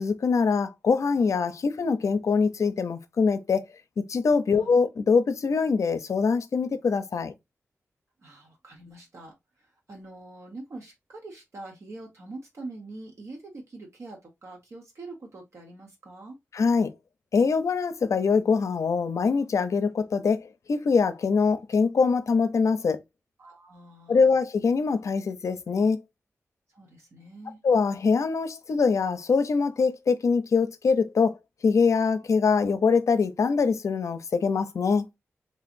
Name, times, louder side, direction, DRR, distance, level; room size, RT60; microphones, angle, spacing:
voice 1, 0.0-3.6 4.1-7.3 16.5-16.9 17.3-23.0 24.1-26.0 27.6-31.4 31.6-35.1, left 5 dB, 75° left, 0.5 m, -23 dB
voice 2, 8.2-16.4 23.4-24.3 26.7-27.6, right 2 dB, 65° right, 1.2 m, -44 dB
3.9 x 2.9 x 2.5 m
wide cardioid pair, 110°, 5 cm